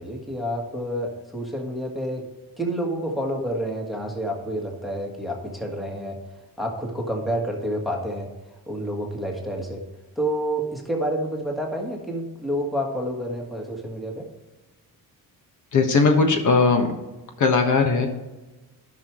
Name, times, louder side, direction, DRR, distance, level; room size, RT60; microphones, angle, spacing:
voice 1, 0.0-2.3 2.6-6.2 6.6-8.3 8.7-9.8 10.2-14.3, equal, ahead, 0 dB, 1.5 m, -29 dB
voice 2, 15.7-16.9 17.4-18.1, left 4 dB, 55° left, 4 dB, 1.4 m, -18 dB
14.0 x 6.1 x 3.1 m, 1.1 s
cardioid pair, 160°, 36 cm